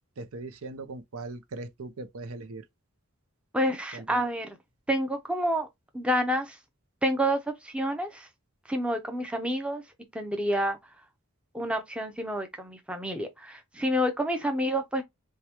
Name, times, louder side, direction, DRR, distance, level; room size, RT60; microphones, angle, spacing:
voice 1, 0.2-2.6 3.9-4.1, right 3 dB, 85° right, 0.6 m, -39 dB
voice 2, 3.5-4.6 4.9-5.7 5.9-6.6 7.0-8.3 8.7-9.8 10.1-10.8 11.5-15.0, equal, 5° right, 0.6 m, -28 dB
4.6 x 2.3 x 2.9 m
head